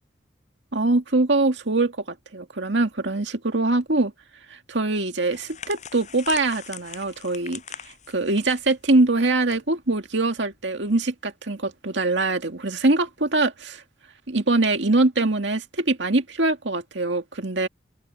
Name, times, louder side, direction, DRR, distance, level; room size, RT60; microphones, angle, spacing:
voice 1, 0.7-1.9 2.3-4.1 4.5-7.6 8.1-13.8 14.3-17.7, right 2 dB, 80° right, 2.1 m, -23 dB
sound 1, 5.3-9.6 9.8-10.1 11.0-11.2, left 8 dB, 40° left, 6.7 m, -41 dB
open air
head